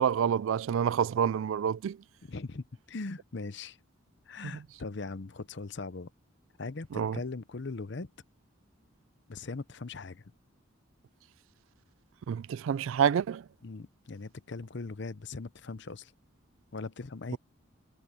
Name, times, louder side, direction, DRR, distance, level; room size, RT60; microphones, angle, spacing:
voice 1, 0.0-2.0 4.4-4.5 6.9-7.2 12.3-13.5, right 8 dB, 75° right, 0.3 m, -28 dB
voice 2, 2.3-3.8 4.3-6.1 6.6-8.1 9.3-10.3 13.6-16.1 16.7-17.4, left 3 dB, 60° left, 0.7 m, -40 dB
head